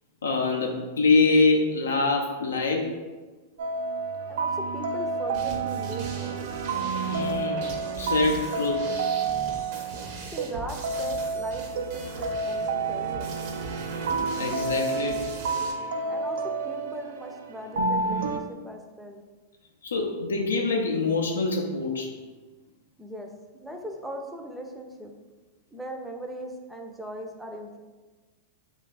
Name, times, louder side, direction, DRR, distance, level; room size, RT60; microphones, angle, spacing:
voice 1, 0.2-2.9 7.0-7.6 8.0-8.9 14.3-15.2 19.8-22.1, left 3 dB, 85° left, 1 dB, 0.4 m, -24 dB
sound 1, 3.6-18.4, right 4 dB, 70° right, 0.3 m, -30 dB
voice 2, 4.3-6.5 10.3-13.3 16.1-19.2 23.0-25.1 25.7-27.8, right 1 dB, 5° right, 2 dB, 0.5 m, -39 dB
sound 2, 5.3-15.7, right 2 dB, 55° right, 0.7 m, -41 dB
3.1 x 2.3 x 4.0 m, 1.3 s
hypercardioid pair, 105°, 0 cm